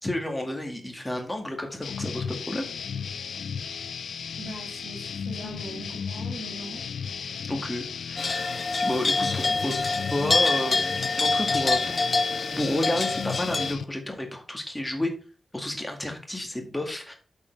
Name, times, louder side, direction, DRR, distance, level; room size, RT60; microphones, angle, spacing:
voice 1, 0.0-2.6 7.5-9.8 10.1-12.0 12.5-15.1 15.5-17.1, left 1 dB, 10° left, 3 dB, 2.0 m, -31 dB
sound 1, 1.8-13.8, left 6 dB, 80° left, 0.6 m, -35 dB
voice 2, 4.4-6.9, right 2 dB, 55° right, 1 dB, 2.8 m, -40 dB
sound 2, 8.2-13.7, left 3 dB, 35° left, 0.4 m, -26 dB
8.6 x 7.2 x 3.3 m, 0.37 s
wide cardioid pair, 150°, 0 cm